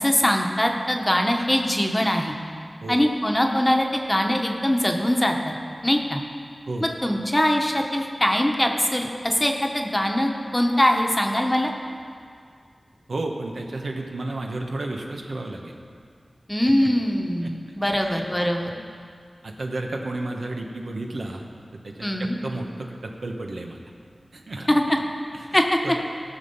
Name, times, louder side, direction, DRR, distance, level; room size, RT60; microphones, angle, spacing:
voice 1, 0.0-2.4 2.9-5.5 5.8-6.2 6.8-11.7 16.5-18.7 22.0-22.4 24.7-24.8 25.5-25.8, left 1 dB, 20° left, 2 dB, 1.1 m, -22 dB
voice 2, 13.1-15.7 16.8-16.9 17.4-17.5 18.0-18.2 19.4-21.5 21.8-23.8 24.3-24.8 25.3-26.0, right 2 dB, 80° right, 1 dB, 1.2 m, -32 dB
17.0 x 6.2 x 5.5 m, 2.2 s
wide cardioid pair, 65°, 0 cm